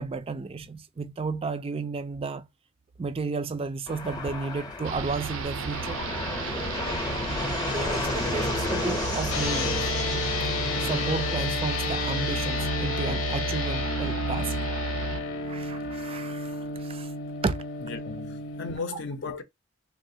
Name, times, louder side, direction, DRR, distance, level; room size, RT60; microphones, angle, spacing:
voice 1, 0.0-2.5 3.0-6.0 7.6-9.9 10.8-14.5 15.5-17.1 17.4-17.6 18.9-19.0, right 4 dB, 30° right, 0.3 m, -33 dB
Fixed-wing aircraft airplane, 3.9-11.5, left 3 dB, 20° left, 0.7 m, -32 dB
sound 1, 4.8-15.2, right 5 dB, 85° right, 0.5 m, -33 dB
sound 2, 9.3-18.8, left 4 dB, 90° left, 0.9 m, -31 dB
voice 2, 17.9-19.4, left 4 dB, 60° left, 0.6 m, -35 dB
3.6 x 2.4 x 2.7 m
head